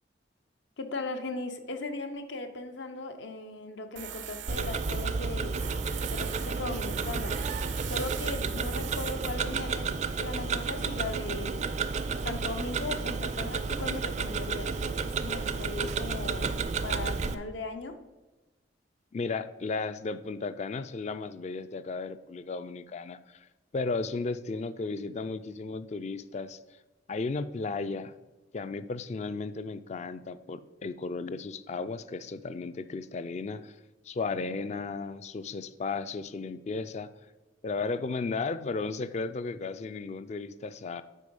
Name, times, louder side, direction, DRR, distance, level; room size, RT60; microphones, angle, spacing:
voice 1, 0.8-5.6 6.1-7.4 7.8-11.6 12.2-16.5 16.8-18.0, left 3 dB, 80° left, 7 dB, 0.8 m, -38 dB
Tools, 4.0-10.5, right 9 dB, 80° right, 0.6 m, -42 dB
Tick-tock, 4.5-17.3, right 4 dB, 40° right, 0.4 m, -31 dB
voice 2, 19.1-23.5 23.7-26.6 27.1-28.1 28.5-33.8 34.1-37.1 37.6-41.0, left 4 dB, 35° left, 13 dB, 0.3 m, -34 dB
8.3 x 4.7 x 5.3 m, 1.1 s
head